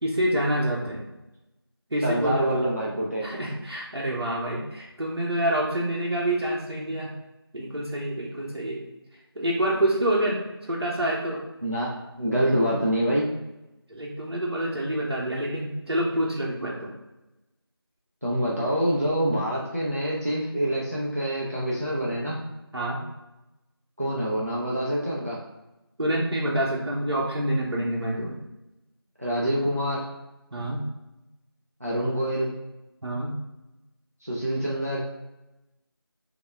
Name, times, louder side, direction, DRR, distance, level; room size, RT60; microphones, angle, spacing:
voice 1, 0.0-1.0 1.9-2.5 3.2-7.1 7.5-8.8 9.4-11.4 13.9-16.9 22.7-23.0 26.0-28.4 30.5-30.8 33.0-33.3, right 1 dB, 80° right, -4 dB, 0.7 m, -27 dB
voice 2, 2.0-3.3 11.6-11.9 12.2-13.3 18.2-22.4 24.0-25.4 29.2-30.0 31.8-32.5 34.2-35.1, equal, 40° right, -4 dB, 0.4 m, -26 dB
3.4 x 2.2 x 3.3 m, 0.98 s
figure-of-eight pair, 175°, 13 cm